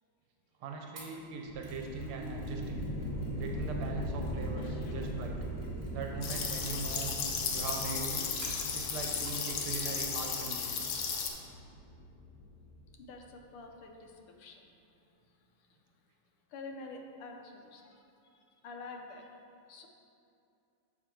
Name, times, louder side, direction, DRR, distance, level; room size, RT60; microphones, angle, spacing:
voice 1, 0.6-2.9 3.4-5.4 5.9-7.1 7.5-8.2 8.7-10.7, right 4 dB, 85° right, 2 dB, 1.6 m, -40 dB
Mechanisms, 1.0-9.5 9.8-10.3 10.6-10.7, right 2 dB, 40° right, 1.5 m, -55 dB
sound 1, 1.5-12.9, equal, 45° left, 1.7 m, -40 dB
voice 2, 4.4-5.1 13.0-14.6 15.3-15.7 16.5-19.3 19.7-19.9, left 3 dB, 85° left, 2 dB, 1.7 m, -49 dB
sound 2, 6.2-11.3, left 6 dB, 70° left, 1.3 m, -35 dB
6.5 x 6.2 x 4.4 m, 2.6 s
omnidirectional pair, 2.4 m